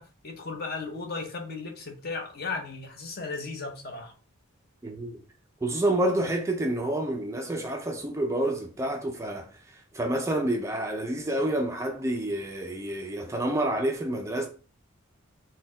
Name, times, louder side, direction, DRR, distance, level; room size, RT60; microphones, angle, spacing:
voice 1, 0.0-4.1, left 4 dB, 50° left, 0.8 m, -36 dB
voice 2, 4.8-5.2 5.6-14.5, right 1 dB, 15° right, 0.3 m, -28 dB
4.0 x 2.2 x 3.7 m
head